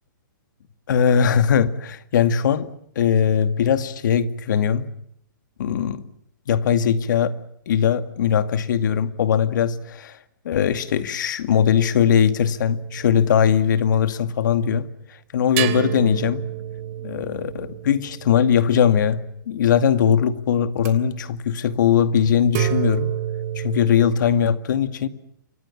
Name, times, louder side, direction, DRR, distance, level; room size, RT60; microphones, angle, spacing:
voice 1, 0.9-2.7 3.0-4.9 5.6-6.0 6.5-7.3 7.7-10.2 10.4-14.9 15.3-16.4 17.0-19.2 19.5-23.1 23.6-25.1, left 8 dB, 65° left, 10 dB, 2.2 m, -20 dB
sound 1, 12.8-13.9 15.6-19.3 20.8-20.9 22.5-24.1, right 11 dB, 45° right, 3.2 m, -29 dB
28.5 x 25.0 x 7.3 m, 0.72 s
hypercardioid pair, 140°, 11 cm